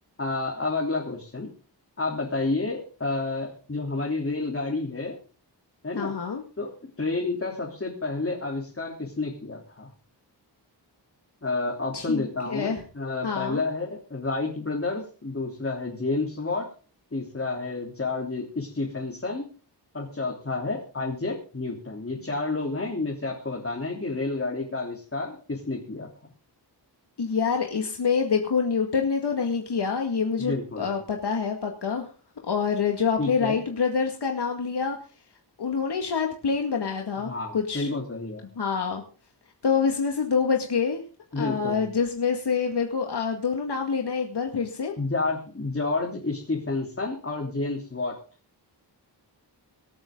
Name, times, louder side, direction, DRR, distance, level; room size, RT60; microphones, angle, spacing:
voice 1, 0.2-1.5 2.0-5.2 5.8-6.2 6.6-6.7 7.0-9.9 11.4-16.7 17.1-19.5 19.9-26.1 30.4-30.9 33.2-33.6 37.2-38.5 41.3-41.8 45.0-48.2, left 3 dB, 30° left, -1 dB, 3.4 m, -30 dB
voice 2, 6.0-6.4 11.9-12.8 13.2-13.6 27.2-32.1 32.4-35.0 35.6-37.9 38.6-39.0 39.6-41.0 41.4-44.9, left 6 dB, 70° left, 3 dB, 2.1 m, -26 dB
25.0 x 8.8 x 3.9 m, 0.37 s
wide cardioid pair, 95°, 42 cm